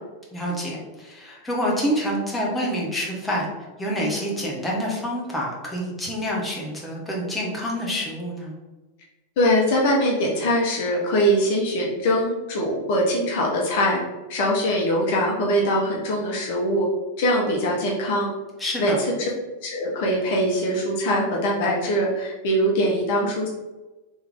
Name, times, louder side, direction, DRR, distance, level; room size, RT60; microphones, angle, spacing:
voice 1, 0.3-3.5 3.8-8.5 18.6-19.0, equal, 10° left, -4 dB, 1.1 m, -27 dB
voice 2, 9.4-14.0 14.3-16.8 17.2-18.3 18.8-19.3 19.6-23.5, equal, 50° left, -2 dB, 0.8 m, -22 dB
3.4 x 3.1 x 3.5 m, 1.1 s
figure-of-eight pair, 90°, 0 cm